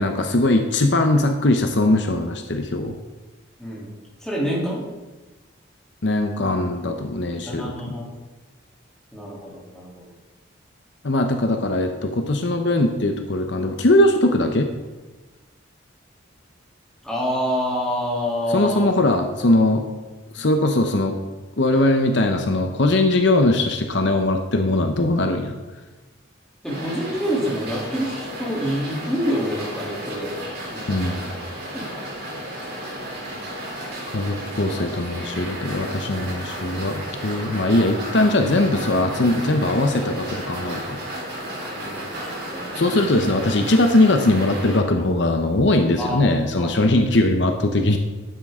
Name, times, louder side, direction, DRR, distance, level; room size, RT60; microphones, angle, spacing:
voice 1, 0.0-2.9 6.0-8.0 11.0-14.7 18.5-19.9 20.3-21.2 21.6-25.5 30.9-31.2 34.1-41.0 42.7-48.0, left 2 dB, 65° left, 5 dB, 0.9 m, -20 dB
voice 2, 3.6-3.9 4.2-4.8 7.5-8.0 9.1-10.1 17.0-18.9 26.6-30.3 30.7-31.1 31.7-32.0 41.7-42.1 42.5-43.3 46.0-46.2 46.6-46.7, equal, 5° left, -6 dB, 3.0 m, -27 dB
sound 1, 26.6-44.8, right 1 dB, 55° right, 4.3 m, -33 dB
12.0 x 9.5 x 3.7 m, 1.2 s
head